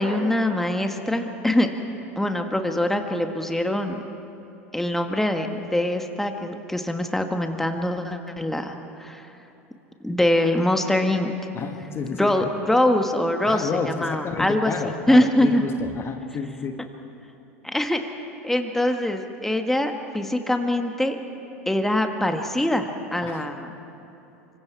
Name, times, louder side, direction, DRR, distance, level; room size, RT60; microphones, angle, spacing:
voice 1, 0.0-1.7 2.1-4.0 4.7-9.2 10.0-11.3 12.2-15.6 17.6-18.0 18.4-21.2 21.6-23.7, left 1 dB, 5° left, 5 dB, 1.7 m, -23 dB
voice 2, 11.5-12.4 13.5-16.8 23.2-23.4, left 6 dB, 35° left, 6 dB, 1.4 m, -30 dB
26.0 x 25.0 x 4.8 m, 2.9 s
hypercardioid pair, 85°, 8 cm